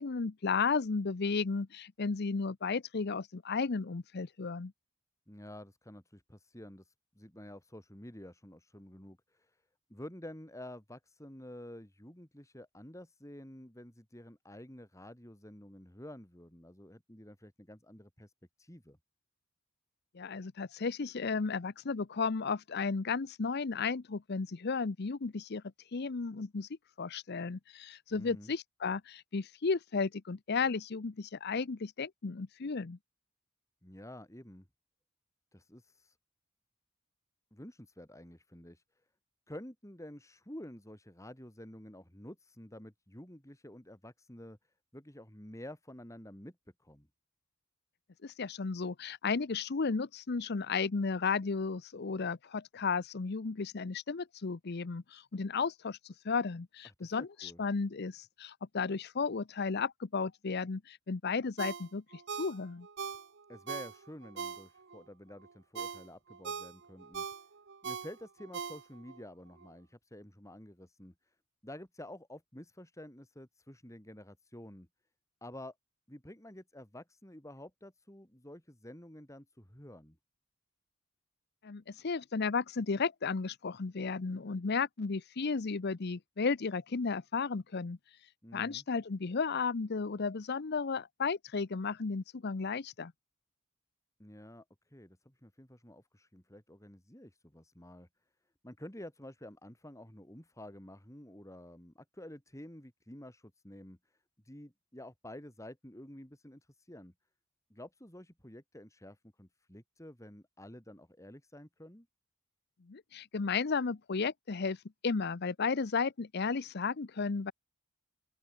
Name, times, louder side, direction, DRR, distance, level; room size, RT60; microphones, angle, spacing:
voice 1, 0.0-4.7 20.1-25.6 25.9-26.7 27.0-33.0 48.2-62.9 81.6-88.0 88.5-93.1 112.9-114.8 115.0-117.5, left 4 dB, 55° left, 0.7 m, -34 dB
voice 2, 5.3-9.6 9.9-18.3 18.6-19.0 28.1-28.5 33.8-34.7 35.5-36.2 37.5-38.8 39.5-47.1 56.8-57.6 63.5-67.3 67.8-71.3 71.6-74.9 75.4-75.8 76.1-80.2 88.4-88.8 94.2-98.1 98.6-104.0 104.4-107.1 107.7-112.1, left 1 dB, 15° left, 4.0 m, -50 dB
Ringtone, 61.6-65.0 65.4-69.2 69.6-69.7, right 6 dB, 60° right, 1.0 m, -41 dB
open air
head